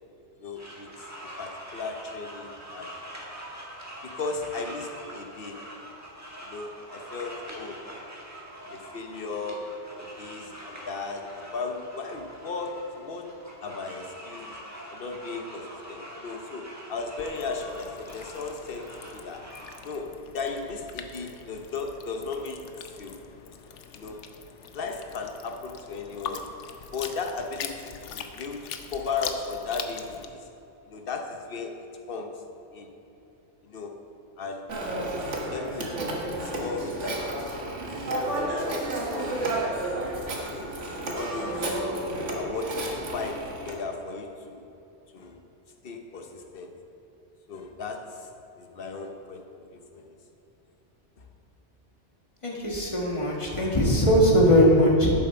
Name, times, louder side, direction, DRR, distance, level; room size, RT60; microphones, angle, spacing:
voice 1, 0.4-1.1 1.4-2.9 4.0-5.6 6.4-7.8 8.7-13.3 13.6-14.6 14.9-19.5 19.8-22.7 23.0-23.2 23.9-24.2 24.7-26.5 26.9-30.4 30.8-31.8 32.1-32.3 32.7-32.9 33.6-33.9 34.4-34.7 35.5-36.1 36.4-37.3 37.6-37.8 38.3-39.8 40.5-40.8 41.1-41.8 42.3-44.6 45.1-45.4 45.8-46.7 47.5-48.3 48.6-50.0 51.2-51.3, left 4 dB, 55° left, 4 dB, 1.1 m, -36 dB
sound 1, 0.6-19.8, equal, 15° right, 1.5 m, -44 dB
sound 2, 17.2-30.3, left 7 dB, 85° left, 1.0 m, -42 dB
Telephone, 34.7-43.8, right 1 dB, 85° right, 1.6 m, -31 dB
voice 2, 52.4-55.1, equal, 25° left, -3 dB, 1.7 m, -20 dB
11.0 x 7.6 x 4.5 m, 3.0 s
omnidirectional pair, 1.2 m